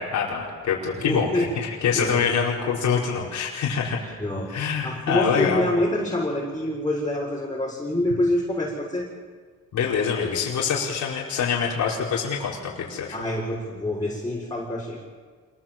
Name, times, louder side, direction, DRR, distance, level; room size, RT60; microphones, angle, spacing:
voice 1, 0.0-1.3 1.6-4.0 4.5-5.7 9.7-13.2, left 6 dB, 70° left, -4 dB, 4.9 m, -25 dB
voice 2, 0.9-1.5 1.9-2.3 4.2-9.1 13.1-15.0, left 1 dB, 15° left, -5 dB, 6.9 m, -26 dB
27.0 x 21.0 x 7.6 m, 1.5 s
cardioid pair, 90°, 30 cm